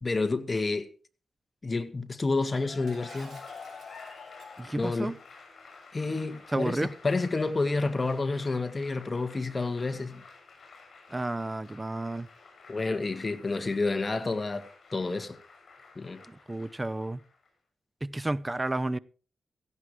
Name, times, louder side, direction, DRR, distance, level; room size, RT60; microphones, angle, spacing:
voice 1, 0.0-0.9 1.6-3.4 4.8-5.1 5.9-10.2 12.7-15.4 16.0-16.2, left 3 dB, 30° left, 1.8 m, -29 dB
Cheering / Applause, 2.5-17.5, left 4 dB, 55° left, 7.3 m, -50 dB
Shatter, 2.9-4.6, right 5 dB, 70° right, 5.6 m, -55 dB
voice 2, 4.6-5.2 6.5-6.9 11.1-12.3 16.3-17.2 18.0-19.0, right 2 dB, 15° right, 0.7 m, -31 dB
17.0 x 15.5 x 3.2 m
wide cardioid pair, 110°, 0 cm